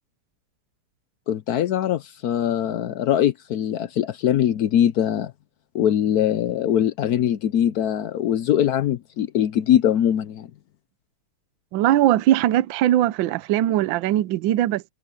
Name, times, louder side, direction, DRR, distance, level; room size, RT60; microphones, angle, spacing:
voice 1, 1.3-5.3 5.7-10.5, left 10 dB, 80° left, 0.8 m, -22 dB
voice 2, 11.7-14.9, right 13 dB, 70° right, 1.3 m, -20 dB
omnidirectional pair, 2.4 m